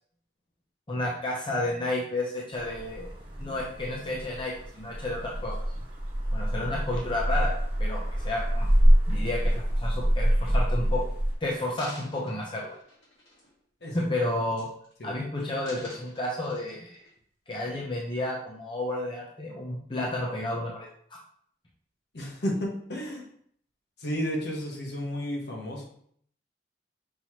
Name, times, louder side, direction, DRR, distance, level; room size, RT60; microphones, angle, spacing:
voice 1, 0.9-3.1 3.4-5.5 6.3-7.5 7.8-8.7 9.1-11.0 11.4-12.7 13.9-14.7 15.0-16.9 17.5-20.9, left 1 dB, 25° left, -3 dB, 0.6 m, -31 dB
sound 1, 2.5-11.4, equal, 30° right, 1.3 m, -26 dB
sound 2, 11.8-13.6 14.0-14.2 14.5-15.1 15.4-17.1 17.7-17.8, left 1 dB, 85° left, 1.8 m, -49 dB
voice 2, 22.1-23.3 24.0-25.8, equal, 65° left, -1 dB, 1.1 m, -32 dB
5.5 x 3.0 x 2.9 m, 0.63 s
head